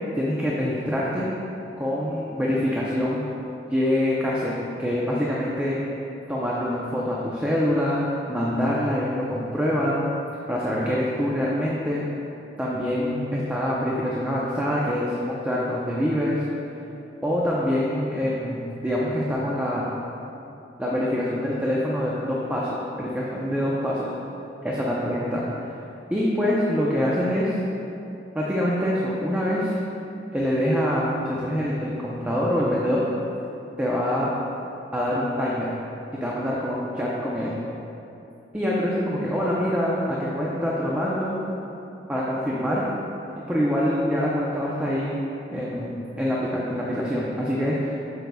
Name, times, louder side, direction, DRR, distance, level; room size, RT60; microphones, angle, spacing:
voice 1, 0.2-1.3 1.8-3.2 3.6-4.5 4.8-5.8 6.3-8.0 8.3-10.1 10.5-12.0 12.6-16.4 17.2-19.8 20.8-24.1 24.6-25.4 26.1-27.5 28.3-29.8 30.3-33.1 33.8-34.3 34.9-35.7 36.2-37.5 38.5-41.4 42.1-42.8 43.5-45.1 45.5-45.9 46.2-48.0, equal, 10° right, -6 dB, 0.6 m, -25 dB
8.9 x 6.7 x 2.3 m, 2.9 s
head